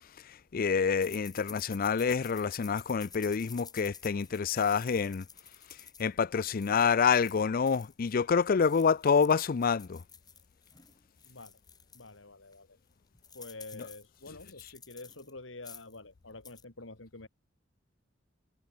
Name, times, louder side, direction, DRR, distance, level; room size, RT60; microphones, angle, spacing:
voice 1, 0.5-5.2 6.0-10.0, left 6 dB, 50° left, 0.4 m, -27 dB
sound 1, 1.0-8.2 8.5-12.1 12.5-12.6 12.9-15.3 15.6-16.0 16.3-16.6, left 6 dB, 20° left, 5.9 m, -52 dB
voice 2, 11.2-11.6 11.9-12.8 13.3-17.3, left 2 dB, 85° left, 3.3 m, -48 dB
head